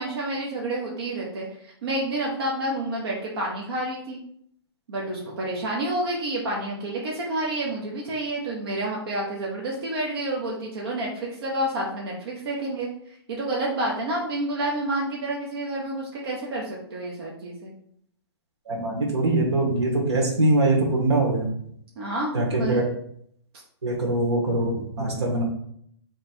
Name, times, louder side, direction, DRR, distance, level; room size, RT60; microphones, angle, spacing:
voice 1, 0.0-4.2 4.9-17.7 22.0-22.9, right 1 dB, 65° right, -3 dB, 1.0 m, -29 dB
voice 2, 18.7-21.5 22.3-22.8 23.8-25.4, right 2 dB, 90° right, -1 dB, 1.5 m, -23 dB
3.3 x 3.2 x 4.4 m, 0.68 s
hypercardioid pair, 150°, 14 cm